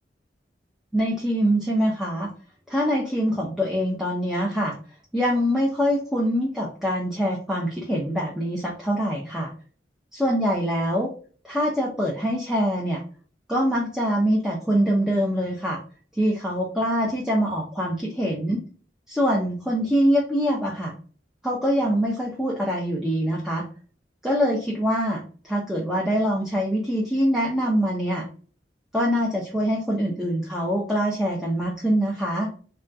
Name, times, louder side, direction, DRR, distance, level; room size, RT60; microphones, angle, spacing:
voice 1, 0.9-2.3 2.7-4.8 5.1-9.5 10.1-11.1 11.4-13.0 13.5-15.8 16.2-18.6 19.1-20.9 21.4-23.6 24.2-28.3 28.9-32.5, equal, 5° right, -4 dB, 0.5 m, -24 dB
3.4 x 2.2 x 2.6 m, 0.40 s
head